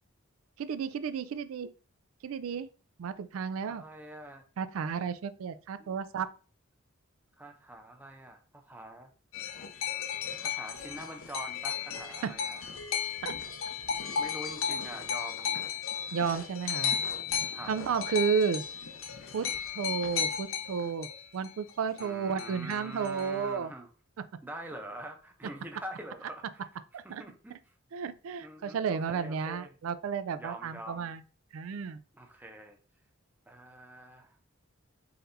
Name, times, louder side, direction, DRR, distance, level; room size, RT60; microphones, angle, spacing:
voice 1, 0.6-1.7 2.2-2.7 3.0-3.8 4.6-6.3 12.2-12.3 13.2-13.3 16.1-17.0 17.7-18.6 19.3-19.5 19.8-21.1 21.3-23.7 26.9-27.2 27.9-31.2 31.5-32.0, right 6 dB, 80° right, 12 dB, 0.3 m, -32 dB
voice 2, 3.7-4.4 5.8-5.9 7.4-9.1 10.4-12.7 14.2-15.6 17.5-17.7 22.0-23.9 24.4-26.7 27.0-27.5 28.4-29.7 30.3-31.1 32.1-32.8 33.5-34.4, right 1 dB, 10° right, 3 dB, 0.6 m, -45 dB
sound 1, 9.3-22.1 22.4-23.4, left 7 dB, 70° left, 0.6 m, -35 dB
4.2 x 3.9 x 2.6 m, 0.36 s
head